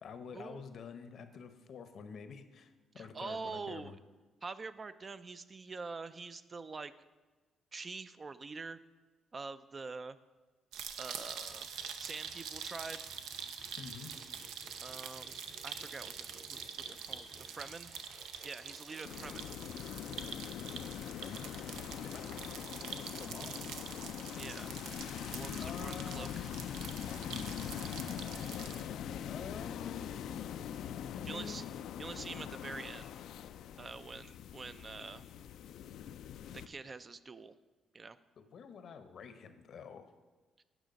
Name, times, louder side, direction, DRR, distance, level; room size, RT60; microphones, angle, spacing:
voice 1, 0.0-4.0 13.8-14.1 21.2-22.3 23.2-23.8 25.6-26.5 27.3-28.2 29.3-30.2 31.1-31.7 38.4-40.1, left 6 dB, 60° left, 9 dB, 0.7 m, -48 dB
voice 2, 3.0-4.0 4.4-6.9 7.7-8.8 9.3-10.2 11.0-11.7 12.0-13.0 14.8-15.4 15.6-16.6 16.9-17.9 18.4-19.5 24.4-24.7 25.3-26.5 31.3-31.6 32.0-33.1 33.8-35.2 36.5-37.5 37.9-38.2 40.6-40.7, right 4 dB, 35° right, 13 dB, 0.4 m, -45 dB
sound 1, 10.7-28.8, right 7 dB, 85° right, 0.6 m, -45 dB
sound 2, 11.3-19.3, right 2 dB, 60° right, 3.4 m, -57 dB
sound 3, 19.0-36.7, left 9 dB, 80° left, 0.3 m, -42 dB
9.1 x 6.2 x 5.2 m, 1.3 s
cardioid pair, 90°, 0 cm